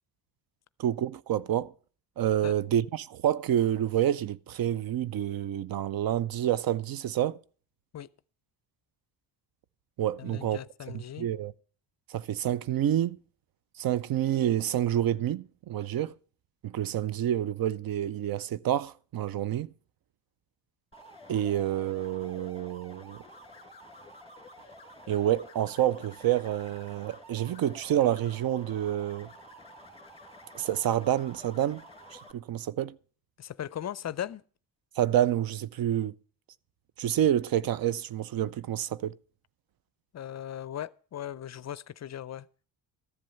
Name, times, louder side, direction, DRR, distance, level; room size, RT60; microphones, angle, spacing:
voice 1, 0.8-1.7 2.2-7.4 10.0-10.6 11.2-11.5 12.1-13.2 13.8-16.1 16.6-19.7 21.3-23.2 25.1-29.3 30.5-31.8 32.1-33.0 35.0-36.1 37.0-39.1, right 11 dB, 55° right, 0.6 m, -28 dB
voice 2, 10.2-11.3 33.4-34.4 40.1-42.5, left 11 dB, 40° left, 0.5 m, -38 dB
sound 1, 20.9-32.3, equal, 15° left, 1.6 m, -50 dB
13.5 x 7.6 x 6.8 m
cardioid pair, 75°, 42 cm